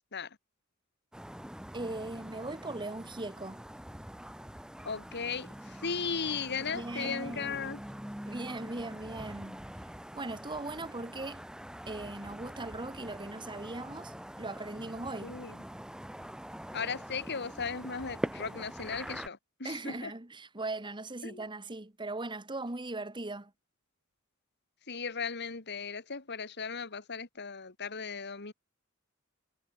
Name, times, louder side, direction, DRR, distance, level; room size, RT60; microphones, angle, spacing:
sound 1, 1.1-19.3, equal, 5° right, 1.4 m, -44 dB
voice 1, 1.7-3.6 6.6-7.8 8.3-9.6 10.1-11.4 11.9-15.4 19.6-23.5, right 2 dB, 20° right, 1.5 m, -39 dB
voice 2, 4.9-7.8 15.2-15.5 16.7-20.1 21.2-21.4 24.9-28.5, left 5 dB, 55° left, 2.2 m, -37 dB
head